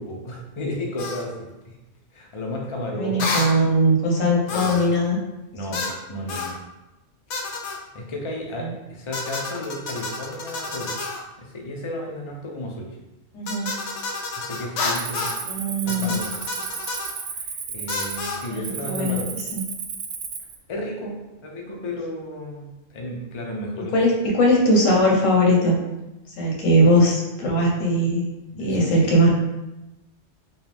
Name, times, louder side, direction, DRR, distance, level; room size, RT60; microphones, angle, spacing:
voice 1, 0.0-1.8 2.1-3.5 4.5-4.8 5.5-6.5 7.9-10.9 11.4-12.9 14.4-15.3 15.8-16.3 17.3-19.3 20.7-21.1 21.4-24.0 28.5-29.2, left 1 dB, 35° left, -1 dB, 0.6 m, -33 dB
sound 1, 1.0-1.2 3.2-3.6 4.5-4.9 5.7-6.0 6.3-6.6 7.3-7.8 9.1-11.2 13.5-15.4 15.9-17.1 17.9-18.4, left 3 dB, 70° left, 0.8 m, -30 dB
voice 2, 3.0-5.2 5.7-5.8 8.6-8.7 13.3-13.7 15.5-16.2 18.5-19.2 19.5-19.6 23.9-25.8 26.4-28.2 28.6-29.3, equal, 90° left, -2 dB, 1.4 m, -20 dB
Cricket, 14.9-20.6, right 6 dB, 70° right, 0.8 m, -33 dB
4.9 x 2.3 x 3.4 m, 1.0 s
omnidirectional pair, 1.3 m